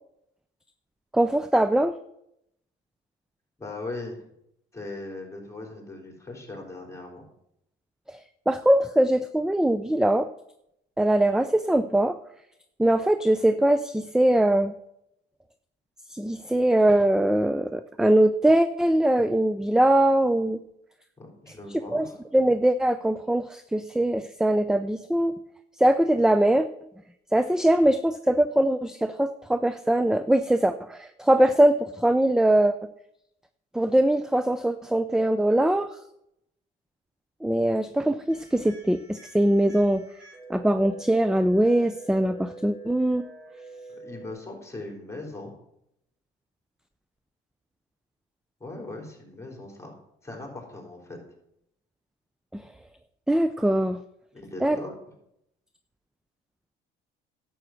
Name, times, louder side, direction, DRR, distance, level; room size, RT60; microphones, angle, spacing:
voice 1, 1.1-1.9 8.1-8.2 8.5-10.3 11.0-12.2 12.8-14.7 16.1-20.6 21.9-25.4 25.8-26.7 27.3-32.7 33.7-36.0 37.4-40.0 40.5-43.2 52.5-52.6 53.3-54.0 54.6-54.8, right 1 dB, 5° right, 12 dB, 0.5 m, -22 dB
voice 2, 3.6-4.2 4.7-7.3 21.2-22.2 44.0-45.5 48.6-49.9 50.2-51.2 54.3-54.9, left 2 dB, 15° left, 1 dB, 4.1 m, -39 dB
sound 1, 38.3-44.3, right 2 dB, 60° right, 4.4 m, -46 dB
11.5 x 7.8 x 5.9 m, 0.78 s
cardioid pair, 100°, 20 cm